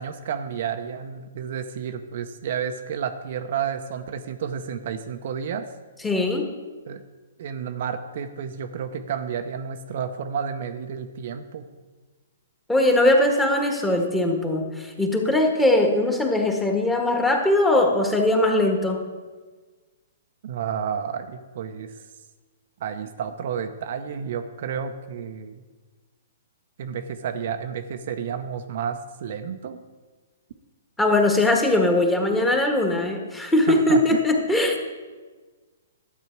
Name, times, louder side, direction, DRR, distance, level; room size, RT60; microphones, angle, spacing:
voice 1, 0.0-5.7 6.9-7.0 7.4-11.7 20.4-22.0 22.8-25.6 26.8-29.8 33.7-34.2, right 7 dB, 55° right, 7 dB, 0.7 m, -31 dB
voice 2, 6.0-6.4 12.7-19.0 31.0-34.9, left 1 dB, 10° left, 2 dB, 1.6 m, -20 dB
12.0 x 8.5 x 4.6 m, 1.4 s
hypercardioid pair, 125°, 0 cm